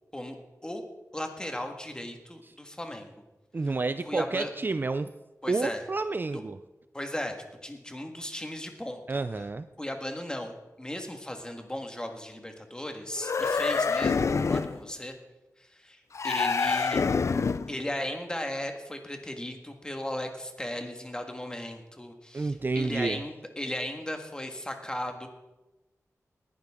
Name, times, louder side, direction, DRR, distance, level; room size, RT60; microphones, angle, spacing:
voice 1, 1.1-3.2 3.6-3.8 4.1-4.5 5.4-5.8 6.2-6.4 6.9-7.4 7.6-9.2 9.8-15.1 15.6-17.0 17.7-25.3, left 1 dB, 15° left, 4 dB, 1.7 m, -36 dB
voice 2, 3.5-5.1 5.5-6.6 9.1-9.7 22.3-23.2, right 3 dB, 35° right, 12 dB, 0.4 m, -29 dB
sound 1, 13.2-14.8 16.1-17.8, left 5 dB, 55° left, 0.4 m, -26 dB
19.0 x 11.0 x 3.7 m, 1.0 s
wide cardioid pair, 100°, 6 cm